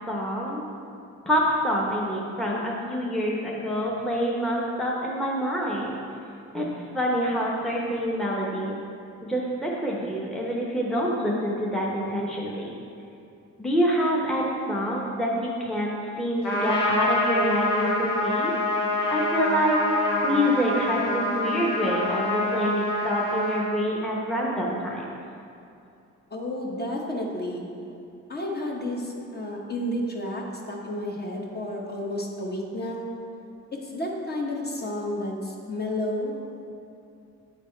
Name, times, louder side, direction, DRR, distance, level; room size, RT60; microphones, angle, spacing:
voice 1, 0.1-0.6 1.3-6.0 6.5-6.7 6.9-8.8 9.3-12.7 13.6-18.5 19.1-19.8 20.2-25.0, equal, ahead, -4 dB, 0.8 m, -26 dB
Trumpet, 16.4-23.7, left 1 dB, 85° left, 1.3 m, -26 dB
voice 2, 26.3-27.6 28.3-33.1 33.9-36.7, left 1 dB, 35° left, -1 dB, 1.1 m, -31 dB
8.6 x 3.4 x 4.3 m, 2.5 s
cardioid pair, 90°, 30 cm